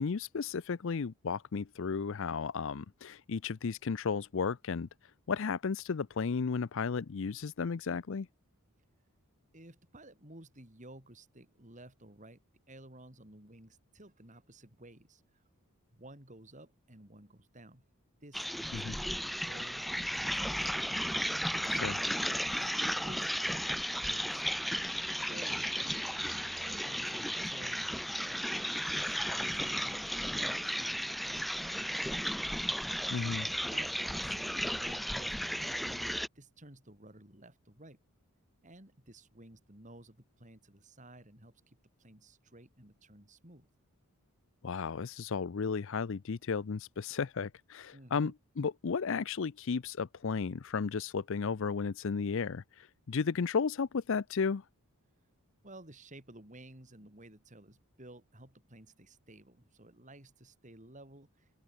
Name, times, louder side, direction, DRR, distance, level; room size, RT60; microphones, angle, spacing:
voice 1, 0.0-4.9 5.3-8.3 18.7-19.0 21.7-22.0 33.1-33.5 44.6-54.6, left 5 dB, 60° left, 0.5 m, -34 dB
voice 2, 9.5-15.4 15.9-17.8 18.2-18.8 19.1-20.8 21.5-24.6 25.3-26.0 26.4-28.4 28.9-31.0 31.2-32.4 33.2-33.4 33.7-36.0 36.3-38.0 38.6-43.7 47.9-48.3 55.6-61.5, right 1 dB, 35° right, 4.0 m, -54 dB
sound 1, 18.3-36.3, equal, ahead, 0.3 m, -34 dB
open air
head